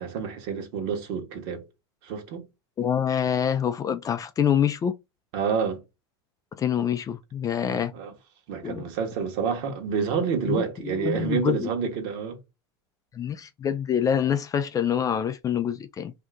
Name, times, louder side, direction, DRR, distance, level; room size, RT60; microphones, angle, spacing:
voice 1, 0.0-1.6 2.0-2.4 5.3-5.8 7.6-8.1 8.5-12.4, right 6 dB, 60° right, 1.3 m, -28 dB
voice 2, 2.8-4.9 6.6-7.9 8.6-8.8 10.5-11.7 13.1-16.1, left 8 dB, 25° left, 0.4 m, -26 dB
2.8 x 2.4 x 3.5 m
hypercardioid pair, 100°, 14 cm